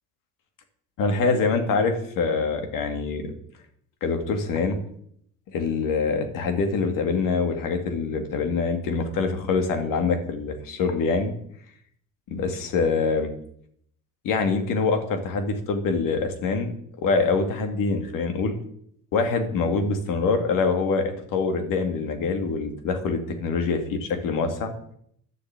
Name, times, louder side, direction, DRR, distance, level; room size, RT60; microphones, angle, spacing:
voice 1, 1.0-3.3 4.0-4.8 5.5-11.3 12.3-13.3 14.2-16.7 17.0-18.5 19.1-24.7, left 4 dB, 80° left, 6 dB, 2.4 m, -25 dB
12.0 x 7.0 x 9.0 m, 0.68 s
cardioid pair, 105°, 33 cm